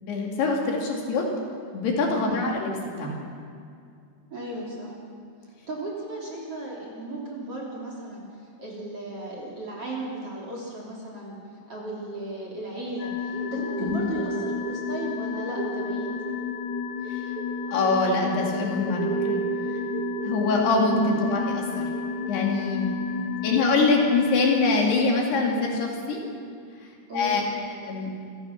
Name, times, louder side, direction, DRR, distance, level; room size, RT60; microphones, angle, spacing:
voice 1, 0.0-1.3 1.7-2.7 3.0-3.2 13.8-14.0 17.1-17.3 17.7-19.4 19.7-19.8 20.2-21.9 22.3-22.9 23.4-26.2 26.8-28.1, left 3 dB, 60° left, -1 dB, 4.2 m, -24 dB
voice 2, 2.3-2.6 4.3-5.0 5.4-8.2 8.6-11.4 11.7-16.1 21.1-21.5 23.3-23.9 27.1-27.4, right 1 dB, 35° right, -3 dB, 3.6 m, -35 dB
sound 1, 13.0-24.6, left 8 dB, 80° left, 2.4 m, -32 dB
sound 2, 13.3-23.2, right 8 dB, 65° right, 2.0 m, -35 dB
27.0 x 16.5 x 5.9 m, 2.4 s
omnidirectional pair, 5.5 m